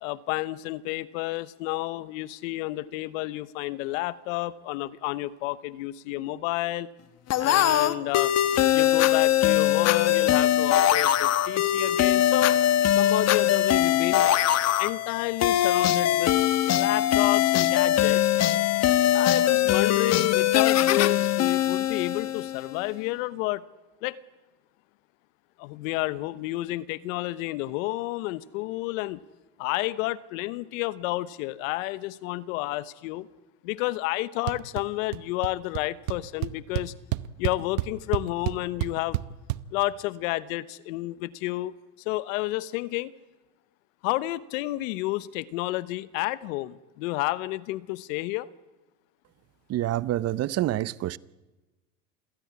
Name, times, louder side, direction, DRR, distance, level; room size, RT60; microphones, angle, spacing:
voice 1, 0.0-6.9 7.4-8.3 8.7-12.6 12.9-14.3 14.8-16.4 16.6-18.3 19.1-23.6 24.0-24.2 25.6-29.2 29.6-33.3 33.6-36.9 37.4-39.2 39.7-41.7 42.0-43.1 44.0-48.5, left 18 dB, 80° left, 1.1 m, -30 dB
sound 1, 7.3-22.8, left 12 dB, 40° left, 1.3 m, -22 dB
sound 2, 34.5-34.8 35.1-35.5 35.8-35.9 36.1-39.6, right 18 dB, 75° right, 1.0 m, -29 dB
voice 2, 49.7-51.2, right 14 dB, 40° right, 0.7 m, -27 dB
27.0 x 16.5 x 9.7 m
supercardioid pair, 120°, 39 cm